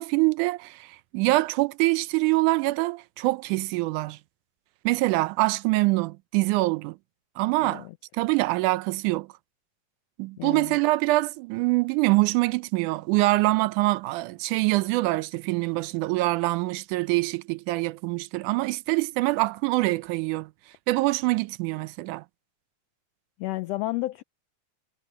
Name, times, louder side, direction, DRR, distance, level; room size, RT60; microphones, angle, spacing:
voice 1, 0.0-4.2 4.9-7.0 7.4-7.9 8.1-9.3 10.2-20.5 20.9-22.2, right 21 dB, 90° right, 2.1 m, -24 dB
voice 2, 7.6-7.9 10.4-10.8 23.4-24.2, left 18 dB, 90° left, 1.4 m, -31 dB
omnidirectional pair, 3.5 m